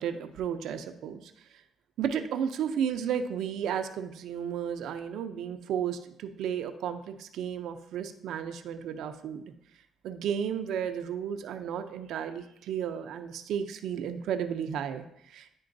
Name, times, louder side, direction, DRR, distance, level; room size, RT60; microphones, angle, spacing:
voice 1, 0.0-1.3 2.0-9.4 10.0-15.6, right 8 dB, 75° right, 8 dB, 0.5 m, -33 dB
10.5 x 3.8 x 2.6 m, 0.77 s
cardioid pair, 90°, 0 cm